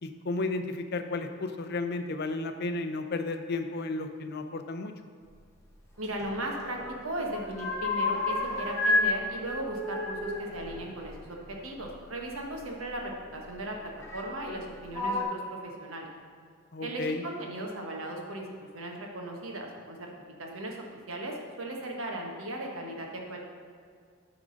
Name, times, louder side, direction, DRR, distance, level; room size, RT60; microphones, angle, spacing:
voice 1, 0.0-4.9 16.7-17.2, left 3 dB, 50° left, 7 dB, 0.6 m, -33 dB
sound 1, 6.0-7.0 7.2-9.1 9.4-11.9 12.9-13.0 14.0-14.6 14.9-15.2, left 2 dB, 15° left, 1.2 m, -31 dB
voice 2, 6.0-6.8 7.0-16.1 16.8-18.4 18.7-20.1 20.4-20.8 21.1-23.4, right 1 dB, 80° right, 1 dB, 1.3 m, -37 dB
9.7 x 3.8 x 6.3 m, 2.1 s
head